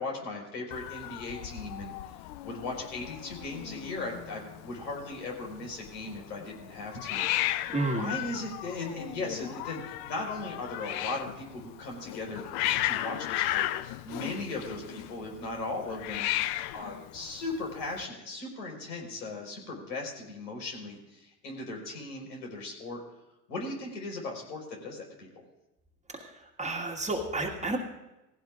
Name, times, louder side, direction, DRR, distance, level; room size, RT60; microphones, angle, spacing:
voice 1, 0.0-1.9 2.4-12.4 12.8-13.7 14.0-16.3 16.7-23.0 23.5-25.3, left 2 dB, 80° left, 0 dB, 4.7 m, -38 dB
Hiss, 0.7-18.0, left 14 dB, 50° left, 0.7 m, -35 dB
voice 2, 7.7-8.1 26.6-27.8, right 2 dB, 15° right, 1 dB, 1.8 m, -30 dB
18.0 x 16.0 x 2.5 m, 0.99 s
hypercardioid pair, 90°, 49 cm